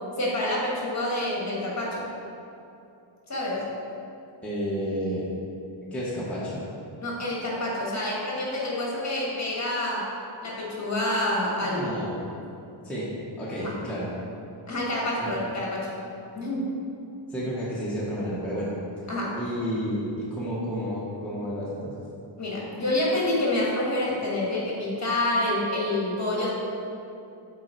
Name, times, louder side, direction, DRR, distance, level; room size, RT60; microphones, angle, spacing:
voice 1, 0.0-2.1 3.3-3.6 7.0-10.1 10.4-11.8 13.6-13.8 14.7-15.9 16.3-16.7 19.1-19.4 22.4-26.5, left 1 dB, 35° left, -4 dB, 1.5 m, -27 dB
voice 2, 4.4-5.3 5.9-6.6 11.6-12.3 12.8-13.1 13.4-14.1 15.2-15.3 17.3-18.7 19.3-22.0, equal, 5° left, -9 dB, 1.0 m, -31 dB
7.4 x 4.4 x 4.4 m, 2.7 s
wide cardioid pair, 170°, 46 cm